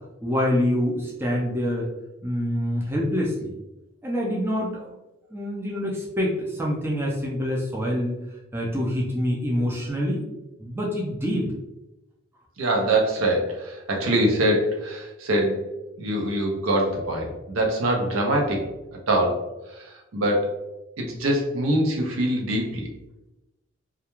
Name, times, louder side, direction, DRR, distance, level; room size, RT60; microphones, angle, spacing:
voice 1, 0.2-1.9 2.2-3.5 4.0-4.9 5.3-8.1 8.5-10.2 10.6-11.5, equal, 10° right, -3 dB, 0.4 m, -26 dB
voice 2, 12.6-15.6 16.0-20.6 21.0-22.9, right 1 dB, 80° right, 1 dB, 0.6 m, -24 dB
2.3 x 2.2 x 2.9 m, 0.97 s
head